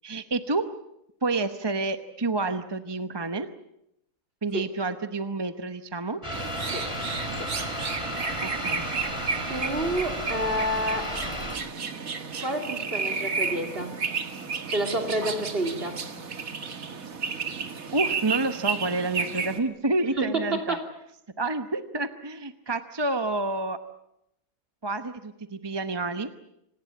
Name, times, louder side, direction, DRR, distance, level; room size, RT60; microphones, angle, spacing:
voice 1, 0.0-0.7 1.2-3.5 4.4-6.2 8.4-8.8 17.9-20.8 21.4-23.8 24.8-26.3, right 2 dB, 20° right, 9 dB, 0.9 m, -29 dB
sound 1, 6.2-11.6, equal, 20° left, 3.6 m, -33 dB
sound 2, 6.3-19.6, right 5 dB, 80° right, 2.2 m, -32 dB
voice 2, 9.5-11.2 12.4-14.0 14.7-16.0 20.2-20.9, right 1 dB, 45° right, 4 dB, 3.4 m, -29 dB
27.0 x 19.0 x 8.6 m, 0.81 s
omnidirectional pair, 1.4 m